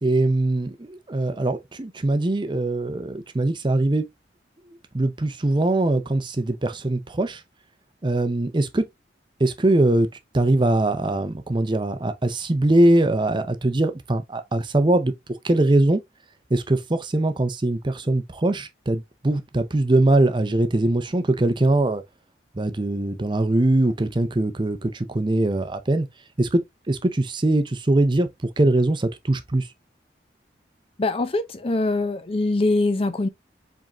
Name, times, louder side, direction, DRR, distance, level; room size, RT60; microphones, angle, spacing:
voice 1, 0.0-4.1 4.9-7.4 8.0-8.8 9.4-10.1 10.3-15.1 15.4-16.0 16.5-22.0 22.5-26.1 26.4-26.6 26.9-28.3 28.6-29.7, right 2 dB, 25° right, 0.6 m, -21 dB
voice 2, 31.0-33.3, left 2 dB, 30° left, 0.5 m, -23 dB
4.9 x 3.6 x 2.9 m
head